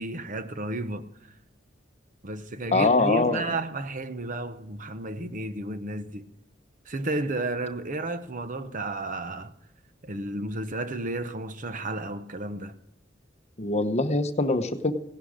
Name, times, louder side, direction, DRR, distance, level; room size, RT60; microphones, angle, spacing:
voice 1, 0.0-1.4 2.2-6.2 6.8-9.5 10.0-12.7, right 2 dB, 45° right, 0.9 m, -32 dB
voice 2, 2.7-3.4 13.6-14.9, left 3 dB, 35° left, 1.0 m, -23 dB
17.0 x 11.5 x 5.1 m
head